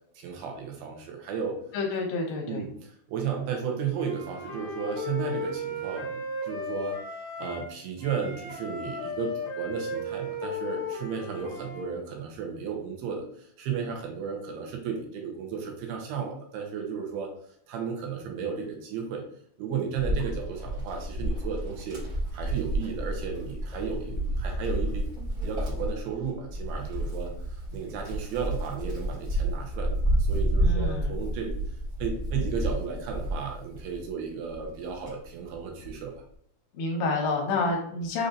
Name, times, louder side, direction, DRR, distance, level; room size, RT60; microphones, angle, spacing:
voice 1, 0.2-1.6 2.5-17.3 17.7-19.2 19.6-22.0 22.3-25.1 25.4-31.6 32.0-36.1, right 6 dB, 90° right, 1 dB, 2.7 m, -34 dB
voice 2, 1.7-2.6 30.6-31.2 36.7-38.3, left 3 dB, 80° left, 1 dB, 2.4 m, -29 dB
Wind instrument woodwind instrument, 3.9-7.7 8.0-11.9, left 2 dB, 55° left, 1.8 m, -35 dB
Wind, 20.0-34.1 34.5-36.0, right 1 dB, 65° right, 0.9 m, -30 dB
6.4 x 2.6 x 2.6 m, 0.65 s
omnidirectional pair, 4.4 m